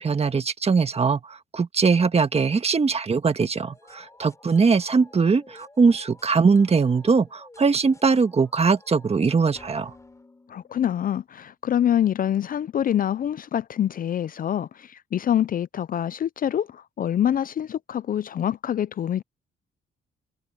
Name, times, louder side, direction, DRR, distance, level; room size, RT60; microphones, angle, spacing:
voice 1, 0.0-9.9, right 5 dB, 30° right, 1.5 m, -21 dB
sound 1, 3.6-11.3, left 2 dB, 15° left, 4.5 m, -52 dB
voice 2, 10.5-19.2, left 10 dB, 45° left, 0.5 m, -25 dB
cardioid pair, 90°, 20 cm